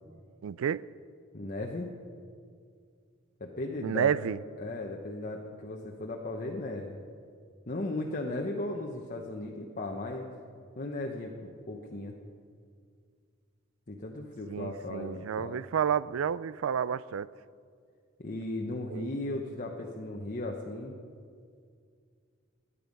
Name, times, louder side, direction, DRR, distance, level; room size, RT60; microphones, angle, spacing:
voice 1, 0.4-0.8 3.8-4.4 14.5-17.3 18.9-19.1, right 8 dB, 80° right, 19 dB, 0.4 m, -30 dB
voice 2, 1.3-1.9 3.4-4.1 4.6-7.0 7.7-10.3 10.8-12.1 13.9-15.6 18.2-21.0, left 2 dB, 40° left, 0 dB, 1.0 m, -36 dB
18.0 x 10.0 x 5.3 m, 2.2 s
head